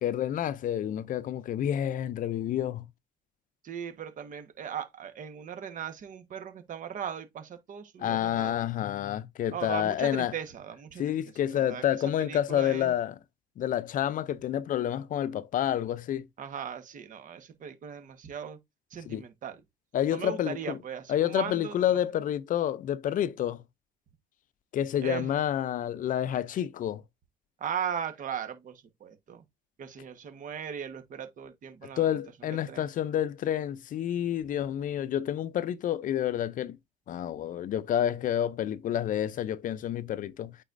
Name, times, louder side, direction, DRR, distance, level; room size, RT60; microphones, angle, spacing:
voice 1, 0.0-2.9 8.0-10.3 11.0-13.1 13.6-16.3 19.1-19.2 19.9-20.8 21.1-23.6 24.7-27.0 31.8-36.8 37.1-40.6, left 10 dB, 55° left, 0.5 m, -29 dB
voice 2, 3.6-8.6 9.5-11.2 11.5-11.8 12.2-12.9 16.4-18.6 18.9-19.6 20.1-21.8 25.0-25.3 27.6-29.4 29.8-32.1 32.7-32.9 34.2-34.6, right 8 dB, 50° right, 1.3 m, -38 dB
8.9 x 4.1 x 2.6 m
cardioid pair, 110°, 17 cm